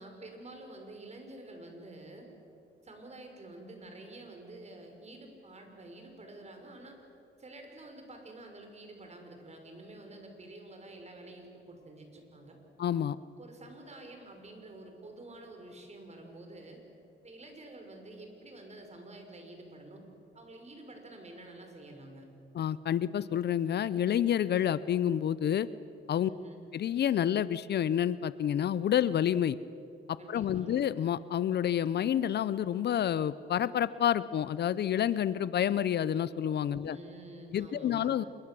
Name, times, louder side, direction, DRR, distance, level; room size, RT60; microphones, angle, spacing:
voice 1, 0.0-2.3 2.8-7.0 7.4-12.6 13.4-16.8 17.2-20.0 20.3-22.3 26.2-26.6 30.2-30.8 36.8-38.1, right 2 dB, 35° right, 4 dB, 5.8 m, -49 dB
voice 2, 12.8-13.2 22.5-25.7 26.1-26.3 26.7-29.6 30.1-37.0 37.5-38.2, left 10 dB, 55° left, 17 dB, 0.7 m, -29 dB
26.5 x 23.0 x 7.7 m, 2.7 s
cardioid pair, 90°, 20 cm